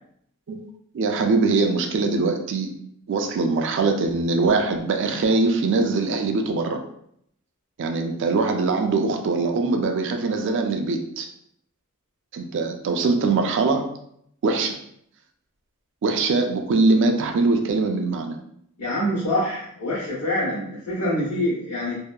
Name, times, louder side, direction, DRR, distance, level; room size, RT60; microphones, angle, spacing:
voice 1, 0.9-2.7 3.1-6.8 7.8-11.3 12.3-13.9 14.4-14.8 16.0-18.4, right 3 dB, 55° right, 5 dB, 0.3 m, -22 dB
voice 2, 18.8-21.9, left 1 dB, 85° left, -9 dB, 0.9 m, -25 dB
2.6 x 2.2 x 2.2 m, 0.71 s
head